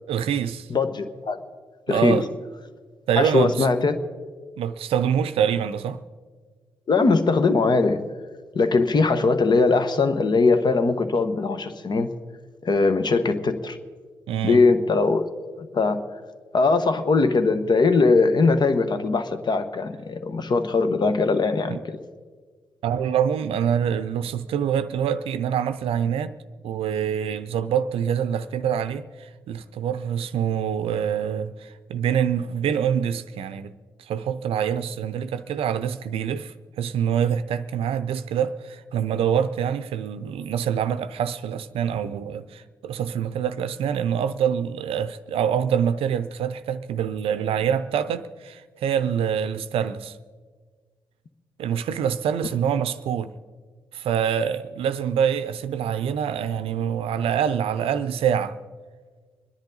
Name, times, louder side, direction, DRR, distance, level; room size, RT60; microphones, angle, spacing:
voice 1, 0.1-0.7 1.9-2.3 3.1-3.7 4.6-6.0 14.3-14.6 21.7-21.8 22.8-26.3 26.6-33.7 34.1-50.2 51.6-53.3 53.9-58.6, right 8 dB, 70° right, 0.6 m, -25 dB
voice 2, 0.7-1.4 1.9-2.2 3.2-4.0 6.9-8.0 8.5-12.1 12.6-13.8 14.4-16.0 16.5-22.0, left 3 dB, 45° left, 1.1 m, -21 dB
24.5 x 10.5 x 3.9 m
hypercardioid pair, 40°, 10 cm